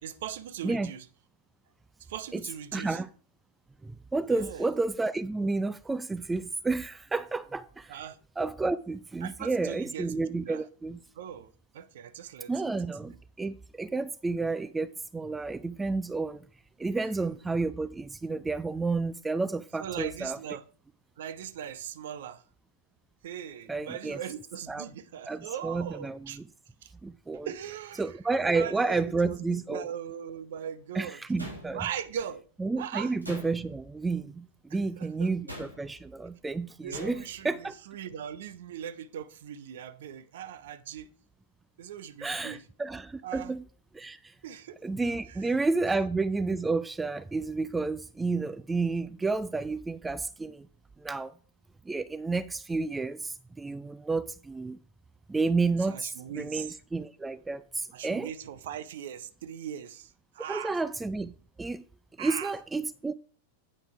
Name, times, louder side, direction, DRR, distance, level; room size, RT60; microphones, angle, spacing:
voice 1, 0.0-1.1 2.1-3.0 4.3-4.7 7.9-8.2 9.2-10.6 11.1-12.7 13.1-13.2 19.8-20.6 21.2-22.4 23.2-26.4 26.8-26.9 27.4-28.0 28.4-31.2 31.7-32.5 32.8-33.1 34.7-35.3 36.8-41.1 41.8-42.6 43.2-43.5 44.4-44.8 45.3-45.5 55.9-56.8 57.9-60.8 62.2-62.5, right 9 dB, 55° right, 0.7 m, -40 dB
voice 2, 2.7-3.1 3.8-8.0 8.4-11.0 12.5-16.5 16.8-20.4 23.7-24.2 24.7-24.9 25.3-26.5 27.0-27.5 28.0-29.9 30.9-31.8 32.6-37.7 42.2-43.6 43.9-44.3 44.8-50.7 51.0-51.3 51.9-54.8 55.3-56.1 56.3-58.3 60.5-61.8 62.2-63.1, right 3 dB, 10° right, 0.4 m, -31 dB
sound 1, 31.4-32.1 33.2-33.9 35.5-36.0 36.9-37.4, left 1 dB, 85° right, 2.7 m, -43 dB
8.7 x 5.3 x 4.7 m
figure-of-eight pair, 90°, 0 cm